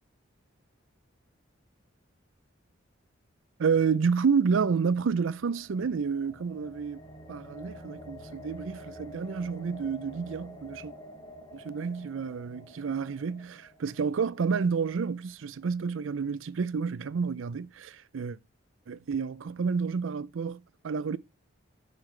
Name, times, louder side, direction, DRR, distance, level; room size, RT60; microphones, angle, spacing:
voice 1, 3.6-7.0 7.3-10.9 11.5-18.4 18.9-21.2, right 5 dB, 75° right, 0.5 m, -29 dB
sound 1, 4.9-15.0, equal, 25° left, 2.3 m, -48 dB
9.6 x 6.6 x 3.3 m
head